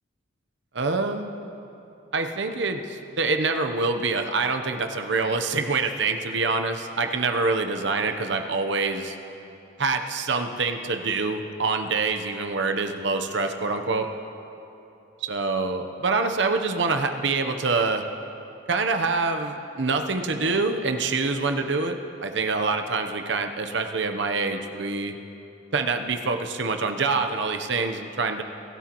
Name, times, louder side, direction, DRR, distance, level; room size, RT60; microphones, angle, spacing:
voice 1, 0.7-1.3 2.1-9.2 9.8-14.1 15.2-18.0 18.7-25.1 25.7-28.4, right 3 dB, 70° right, 6 dB, 0.9 m, -26 dB
24.0 x 13.0 x 3.0 m, 2.9 s
head